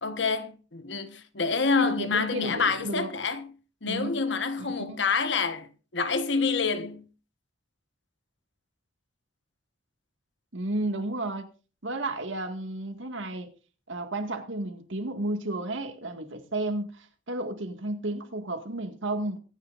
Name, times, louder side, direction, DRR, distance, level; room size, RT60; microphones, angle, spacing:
voice 1, 0.0-3.5 3.8-7.0, left 4 dB, 65° left, 1.3 m, -27 dB
voice 2, 1.8-3.1 3.8-4.1 4.6-5.0 10.5-11.5 11.8-13.5 13.9-19.4, right 2 dB, 75° right, 2.0 m, -32 dB
23.0 x 9.8 x 2.6 m
head